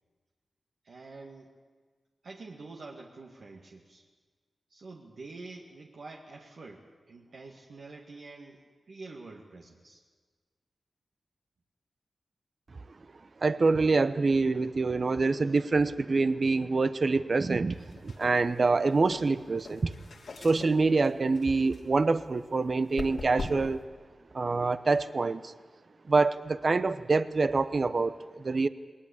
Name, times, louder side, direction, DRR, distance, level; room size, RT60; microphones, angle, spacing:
voice 1, 0.8-1.5 2.2-4.0 4.7-10.0, right 3 dB, 75° right, -1 dB, 2.0 m, -47 dB
voice 2, 13.4-17.8 18.0-20.0 20.4-23.8 24.3-25.5 26.1-28.7, right 3 dB, 55° right, 13 dB, 0.8 m, -26 dB
sound 1, 17.7-23.8, left 3 dB, 80° left, 3.0 m, -43 dB
19.5 x 19.5 x 8.7 m, 1.5 s
cardioid pair, 55°, 0 cm